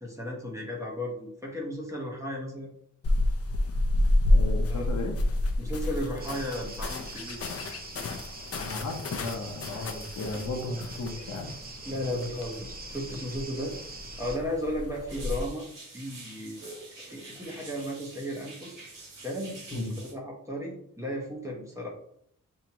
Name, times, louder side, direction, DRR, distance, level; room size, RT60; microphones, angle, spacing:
voice 1, 0.0-2.8 4.7-4.9 5.6-7.4 11.8-13.8 14.2-15.7 15.9-16.6 17.0-18.8 19.2-21.9, equal, 10° right, -2 dB, 1.0 m, -35 dB
sound 1, 3.0-15.5, left 1 dB, 50° left, 0.6 m, -30 dB
voice 2, 4.3-5.1 8.6-11.5 19.7-19.9, left 2 dB, 65° left, 1 dB, 0.9 m, -35 dB
sound 2, 6.2-14.4, right 3 dB, 30° right, 0.6 m, -44 dB
sound 3, 15.1-20.1, right 2 dB, 80° right, 1.8 m, -46 dB
6.3 x 2.9 x 2.9 m, 0.68 s
wide cardioid pair, 170°, 31 cm